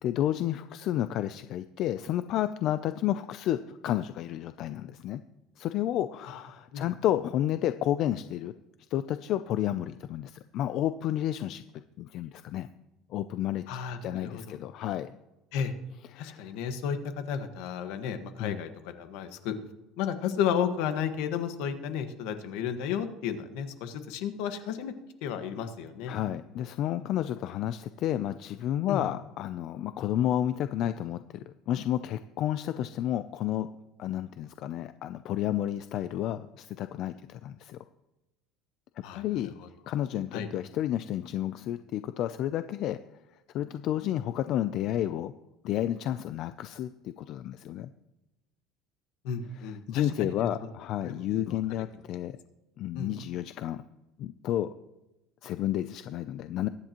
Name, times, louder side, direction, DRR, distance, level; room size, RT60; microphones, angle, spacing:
voice 1, 0.0-5.2 5.6-8.5 8.9-12.7 13.1-13.6 14.0-15.1 16.1-16.5 18.4-18.6 26.1-33.7 34.0-37.8 39.1-39.5 39.9-43.0 43.5-45.3 45.6-47.9 49.5-52.4 52.8-53.8 54.2-54.7 55.4-56.7, left 12 dB, 50° left, 11 dB, 0.4 m, -31 dB
voice 2, 13.7-14.6 15.5-15.7 16.1-19.5 20.0-24.9 25.2-26.2 28.9-29.0 39.0-39.7 40.3-40.5 49.2-50.5 51.0-51.6 52.9-53.1, left 8 dB, 75° left, 8 dB, 1.5 m, -33 dB
22.5 x 9.9 x 3.0 m, 0.97 s
cardioid pair, 150°, 0 cm